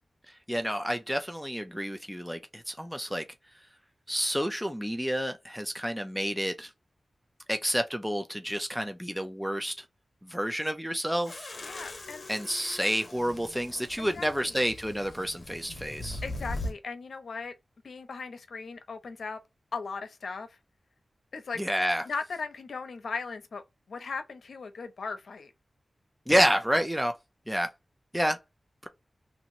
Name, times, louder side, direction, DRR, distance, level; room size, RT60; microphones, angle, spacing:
voice 1, 0.5-3.3 4.1-6.7 7.5-9.8 10.2-11.5 12.3-16.2 21.6-22.0 26.3-27.2 27.5-27.7 28.1-28.4, equal, ahead, 0.4 m, -29 dB
sound 1, 11.2-16.7, left 2 dB, 55° left, 1.0 m, -40 dB
voice 2, 11.6-12.3 14.0-14.6 16.2-17.5 17.8-19.4 19.7-20.6 21.3-21.6 22.0-23.6 23.9-25.5, left 4 dB, 85° left, 0.6 m, -38 dB
2.9 x 2.5 x 2.6 m
wide cardioid pair, 70°, 0 cm